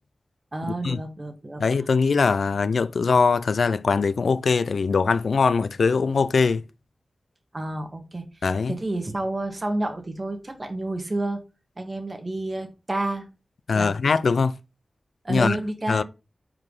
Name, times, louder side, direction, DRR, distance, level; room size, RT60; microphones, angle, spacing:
voice 1, 0.5-1.9 7.5-11.4 11.8-13.3 13.7-14.0 15.2-16.0, right 2 dB, 30° right, 1.8 m, -30 dB
voice 2, 1.6-6.6 8.4-8.7 13.7-14.5 15.3-15.6 15.9-16.0, left 5 dB, 80° left, 0.4 m, -21 dB
4.9 x 4.8 x 5.4 m
wide cardioid pair, 90°, 0 cm